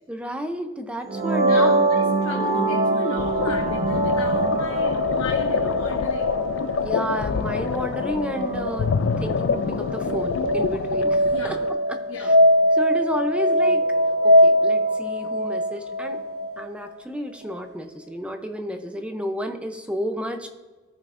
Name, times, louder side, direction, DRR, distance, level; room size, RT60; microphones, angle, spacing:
voice 1, 0.1-1.7 6.8-8.9 9.2-11.6 11.9-12.3 12.7-13.8 14.2-16.2 16.6-20.5, equal, 5° right, 5 dB, 0.5 m, -31 dB
sound 1, 1.1-16.7, equal, 50° right, 2.6 m, -22 dB
voice 2, 1.4-6.3 11.3-11.6 12.1-12.4, left 2 dB, 85° left, -2 dB, 1.0 m, -35 dB
sound 2, 3.2-11.7, left 6 dB, 60° left, 0.3 m, -26 dB
14.0 x 5.5 x 2.5 m, 1.2 s
head